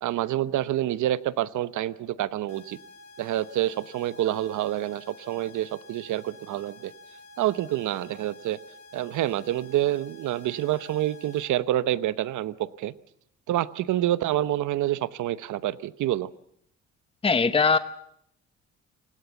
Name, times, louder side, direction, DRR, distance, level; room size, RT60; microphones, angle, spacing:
voice 1, 0.0-2.8 3.2-6.9 7.4-8.6 8.9-12.9 13.5-16.3, right 13 dB, 75° right, 16 dB, 1.0 m, -27 dB
sound 1, 2.5-11.5, left 2 dB, 85° left, 4.2 m, -50 dB
voice 2, 17.2-17.8, left 4 dB, 20° left, 11 dB, 0.9 m, -20 dB
28.0 x 17.5 x 7.2 m, 0.72 s
cardioid pair, 90°, 30 cm